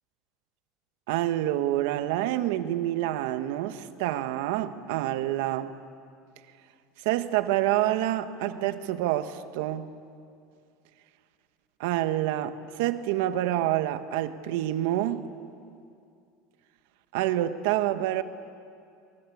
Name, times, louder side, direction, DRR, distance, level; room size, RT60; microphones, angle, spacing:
voice 1, 1.1-5.7 7.0-9.9 11.8-15.3 17.1-18.2, right 13 dB, 75° right, 10 dB, 1.3 m, -27 dB
30.0 x 22.0 x 8.5 m, 2.4 s
cardioid pair, 160°, 0 cm